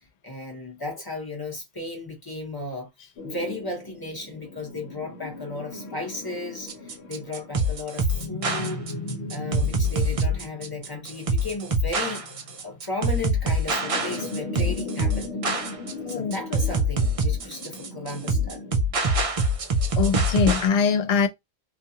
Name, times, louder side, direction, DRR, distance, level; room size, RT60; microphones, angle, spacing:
voice 1, 0.2-2.9 3.2-8.9 9.3-12.3 12.6-15.3 16.1-18.7, left 2 dB, 20° left, 0.9 m, -35 dB
sound 1, 3.2-18.8, left 2 dB, 80° left, 1.0 m, -38 dB
sound 2, 6.7-20.7, right 1 dB, 50° right, 0.4 m, -24 dB
voice 2, 16.0-16.4 20.0-21.3, left 6 dB, 55° left, 0.5 m, -22 dB
2.4 x 2.3 x 2.7 m
omnidirectional pair, 1.1 m